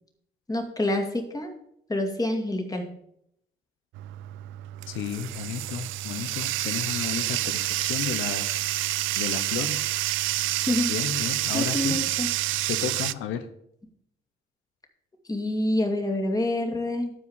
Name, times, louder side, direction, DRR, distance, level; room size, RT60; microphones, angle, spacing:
voice 1, 0.5-1.5 1.9-2.9 10.7-10.9 11.5-12.3 15.3-17.1, left 1 dB, 20° left, 3 dB, 2.4 m, -27 dB
Bathtub (filling or washing), 3.9-13.1, right 16 dB, 85° right, 0.4 m, -28 dB
voice 2, 4.9-8.6 9.2-9.9 10.9-12.0 12.7-13.5, left 8 dB, 90° left, 9 dB, 0.9 m, -32 dB
12.5 x 4.8 x 7.3 m, 0.73 s
cardioid pair, 90°, 20 cm